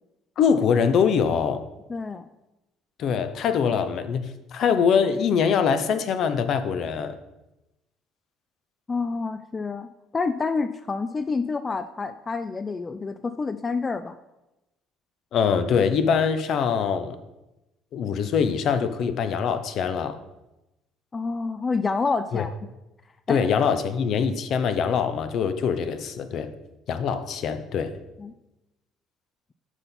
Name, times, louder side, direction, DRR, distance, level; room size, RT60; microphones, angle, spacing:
voice 1, 0.4-1.6 3.0-7.1 15.3-17.2 17.9-20.2 22.3-22.4 23.3-26.5 26.9-27.9, left 6 dB, 60° left, 10 dB, 0.6 m, -23 dB
voice 2, 1.9-2.2 8.9-9.9 10.1-14.2 21.1-22.5 23.3-23.4 28.2-28.3, left 4 dB, 25° left, 11 dB, 0.3 m, -28 dB
6.0 x 5.3 x 5.9 m, 0.97 s
cardioid pair, 110°, 0 cm